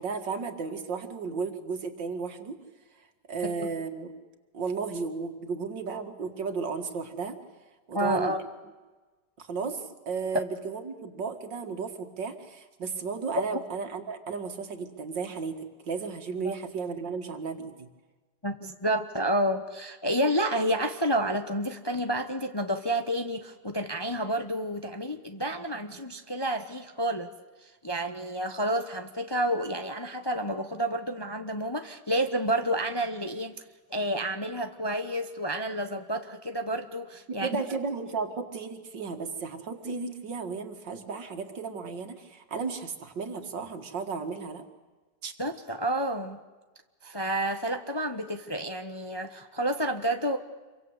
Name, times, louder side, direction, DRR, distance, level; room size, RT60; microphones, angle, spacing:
voice 1, 0.0-2.6 3.3-4.1 4.5-7.4 7.9-8.3 9.4-15.6 15.9-17.9 37.3-44.6 45.2-45.3, right 5 dB, 90° right, 7 dB, 2.7 m, -34 dB
voice 2, 7.9-8.4 16.4-16.6 18.4-27.3 27.6-33.6 33.9-37.6 45.4-46.4 47.0-50.4, right 1 dB, 20° left, 7 dB, 0.9 m, -30 dB
27.5 x 23.5 x 8.2 m, 1.3 s
omnidirectional pair, 1.9 m